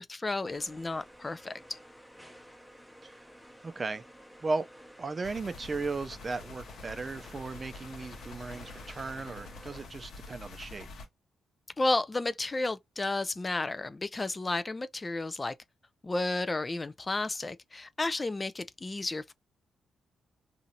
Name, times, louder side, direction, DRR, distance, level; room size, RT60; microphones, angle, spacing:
voice 1, 0.0-1.6 11.8-15.5 16.0-19.3, left 2 dB, 30° left, 0.4 m, -32 dB
sound 1, 0.5-9.9, equal, 5° left, 0.8 m, -53 dB
voice 2, 3.6-4.0 4.4-4.6 5.0-10.9, right 3 dB, 40° right, 0.4 m, -36 dB
sound 2, 5.2-11.1, left 3 dB, 70° left, 0.9 m, -47 dB
2.8 x 2.5 x 2.6 m
supercardioid pair, 60°, 0 cm